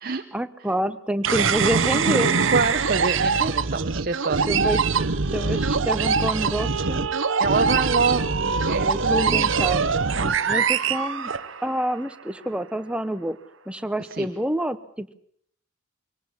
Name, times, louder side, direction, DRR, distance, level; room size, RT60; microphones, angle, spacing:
voice 1, 0.3-2.4 4.5-4.8 5.3-7.1 8.8-9.9 10.5-11.3 11.6-13.4 13.7-15.1, right 1 dB, 5° right, 11 dB, 0.9 m, -27 dB
sound 1, 1.2-11.9, right 5 dB, 70° right, 1.0 m, -23 dB
voice 2, 2.5-4.9 7.4-9.8 10.2-10.6 14.2-14.3, right 4 dB, 45° right, 6 dB, 0.9 m, -27 dB
24.0 x 18.0 x 7.2 m, 0.63 s
head